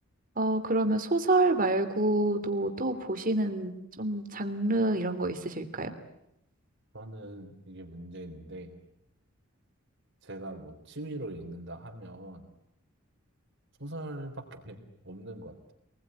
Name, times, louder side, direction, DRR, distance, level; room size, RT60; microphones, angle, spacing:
voice 1, 0.4-5.9, right 2 dB, 40° right, 7 dB, 3.0 m, -27 dB
voice 2, 6.9-8.8 10.2-12.5 13.8-15.7, right 1 dB, 55° right, 4 dB, 3.7 m, -42 dB
27.0 x 21.0 x 10.0 m, 0.81 s
head